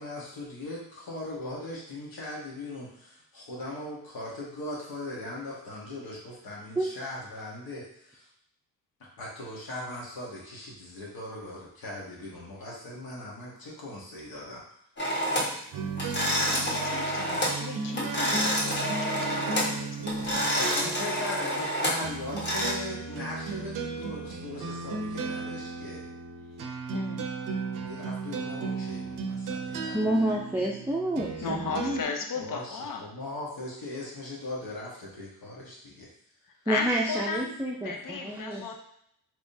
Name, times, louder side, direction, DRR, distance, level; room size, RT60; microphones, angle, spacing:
voice 1, 0.0-8.3 9.0-14.6 20.5-26.1 27.8-30.1 32.4-36.1, left 1 dB, 80° left, -4 dB, 1.3 m, -39 dB
sound 1, 15.0-15.6 16.0-17.6 17.9-19.8 20.1-22.7, equal, 30° left, 1.2 m, -28 dB
sound 2, 15.7-32.0, right 4 dB, 65° right, 0.6 m, -35 dB
voice 2, 16.2-20.6 26.9-27.2 31.4-33.0 36.7-37.6 37.8-38.7, left 5 dB, 65° left, 3 dB, 0.7 m, -36 dB
voice 3, 29.9-32.0 36.7-38.6, right 1 dB, 5° right, -3 dB, 0.4 m, -29 dB
3.5 x 3.0 x 2.7 m, 0.72 s
cardioid pair, 80°, 35 cm